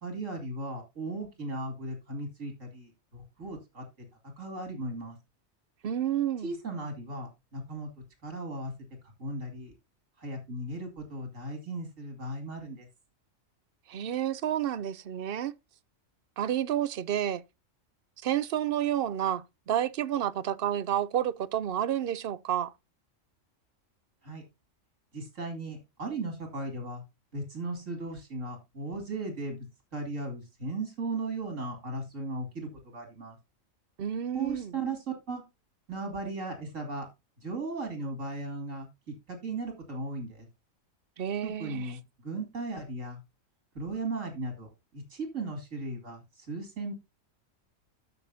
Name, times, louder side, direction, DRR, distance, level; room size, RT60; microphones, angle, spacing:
voice 1, 0.0-3.8 4.4-5.2 6.4-7.9 8.2-8.7 9.2-9.7 10.2-12.9 24.2-24.4 25.1-27.0 27.3-29.6 29.9-33.4 34.3-35.4 35.9-37.1 37.4-40.5 41.4-43.2 43.7-44.7 44.9-46.9, right 2 dB, 75° right, 2.9 m, -36 dB
voice 2, 5.8-6.5 13.9-15.5 16.4-17.4 18.2-22.7 34.0-34.7 41.2-41.9, right 10 dB, 55° right, 0.7 m, -30 dB
12.5 x 7.0 x 2.7 m
omnidirectional pair, 1.4 m